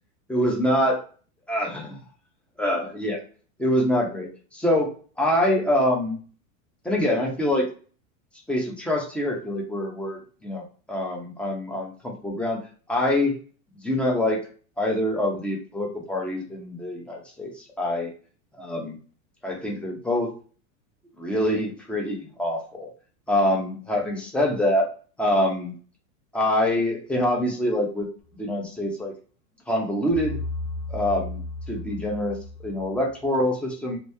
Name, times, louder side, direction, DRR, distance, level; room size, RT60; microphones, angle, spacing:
voice 1, 0.3-1.0 1.5-2.0 2.6-3.2 3.6-4.9 5.2-6.2 6.8-7.7 8.5-10.6 10.9-12.6 12.9-13.4 13.8-14.4 14.8-18.1 18.6-19.0 19.4-20.3 21.2-22.9 23.3-24.9 25.2-25.8 26.3-28.1 28.3-29.1 29.7-30.4 30.9-34.0, left 1 dB, 5° left, -1 dB, 0.7 m, -25 dB
sound 1, 30.1-33.2, left 2 dB, 45° left, 0.7 m, -34 dB
3.0 x 2.7 x 3.3 m, 0.40 s
supercardioid pair, 140°, 40 cm